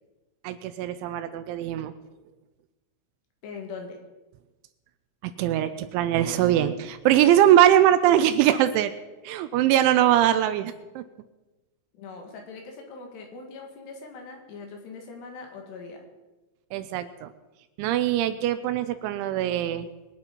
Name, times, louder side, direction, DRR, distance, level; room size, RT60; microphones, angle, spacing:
voice 1, 0.4-1.9 5.2-8.9 9.2-11.0 16.7-17.3 17.8-19.9, right 11 dB, 85° right, 10 dB, 3.0 m, -22 dB
voice 2, 3.4-4.0 11.9-16.0, left 4 dB, 65° left, 3 dB, 3.8 m, -41 dB
23.0 x 8.9 x 5.2 m, 1.1 s
omnidirectional pair, 5.4 m